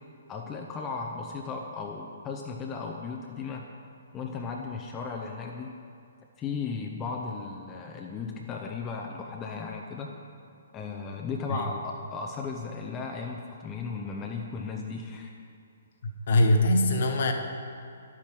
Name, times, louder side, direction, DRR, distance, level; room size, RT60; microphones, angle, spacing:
voice 1, 0.3-3.7 4.1-5.8 6.4-10.1 10.7-15.3, left 4 dB, 20° left, 0 dB, 0.9 m, -36 dB
voice 2, 16.0-17.3, left 1 dB, 50° left, 4 dB, 1.3 m, -23 dB
11.5 x 8.5 x 6.1 m, 2.5 s
figure-of-eight pair, 125°, 0 cm